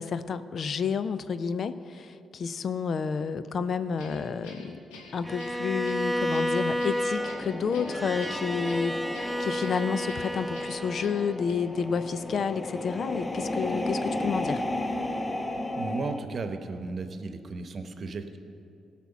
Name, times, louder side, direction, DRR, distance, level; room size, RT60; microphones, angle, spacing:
voice 1, 0.0-4.8 5.1-14.6, left 6 dB, 60° left, 13 dB, 0.5 m, -30 dB
Guitar, 4.0-11.5, left 3 dB, 90° left, 1.3 m, -48 dB
Bowed string instrument, 5.2-11.5, equal, 5° right, 0.5 m, -31 dB
sound 1, 7.2-16.2, left 1 dB, 25° left, 1.0 m, -34 dB
voice 2, 15.6-18.4, right 3 dB, 55° right, 8 dB, 1.0 m, -35 dB
17.5 x 6.0 x 5.9 m, 2.6 s
hypercardioid pair, 50°, 0 cm